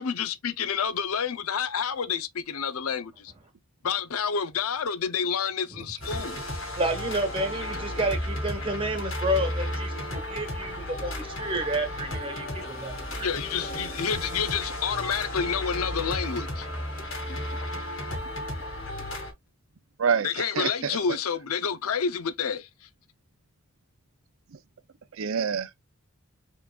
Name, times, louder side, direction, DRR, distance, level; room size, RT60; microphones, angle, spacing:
voice 1, 0.0-3.3 3.8-6.4 13.2-16.7 20.2-22.7, left 6 dB, 85° left, 0.6 m, -29 dB
sound 1, 6.0-19.3, left 1 dB, 70° left, 2.3 m, -34 dB
voice 2, 6.1-12.9 13.2-13.3, right 1 dB, 25° right, 1.2 m, -30 dB
sound 2, 7.2-17.6, right 1 dB, 10° left, 1.5 m, -47 dB
voice 3, 20.0-21.0 25.1-25.7, right 6 dB, 70° right, 0.5 m, -27 dB
4.7 x 3.9 x 2.3 m
head